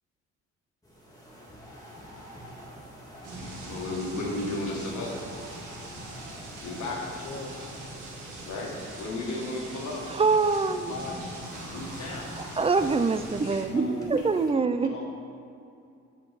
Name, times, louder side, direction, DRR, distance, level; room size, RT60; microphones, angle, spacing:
sound 1, 0.8-14.5, equal, 10° left, 1.9 m, -45 dB
sound 2, 3.2-13.6, right 2 dB, 85° right, 1.9 m, -43 dB
voice 1, 3.7-5.2 6.6-7.1 8.4-10.1 11.7-12.3 13.4-13.5, left 2 dB, 75° left, -1 dB, 1.6 m, -34 dB
voice 2, 7.0-7.5 10.7-11.2 13.6-14.1 14.8-15.0, left 3 dB, 45° left, -4 dB, 1.1 m, -40 dB
voice 3, 10.1-10.9 12.6-14.9, right 4 dB, 20° right, 10 dB, 0.3 m, -24 dB
7.6 x 6.5 x 4.1 m, 2.5 s
cardioid pair, 90°, 30 cm